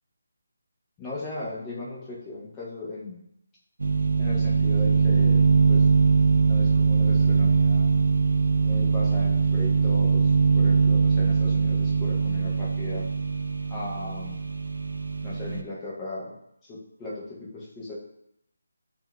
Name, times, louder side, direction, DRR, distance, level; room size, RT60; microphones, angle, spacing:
voice 1, 1.0-3.2 4.2-5.4 5.7-6.0 6.3-7.9 8.6-13.1 13.7-14.4 15.2-16.3 16.6-17.9, left 2 dB, 15° left, -7 dB, 0.5 m, -37 dB
sound 1, 3.8-15.6, right 5 dB, 85° right, 0.3 m, -22 dB
5.4 x 2.1 x 2.3 m, 0.75 s
figure-of-eight pair, 170°, 0 cm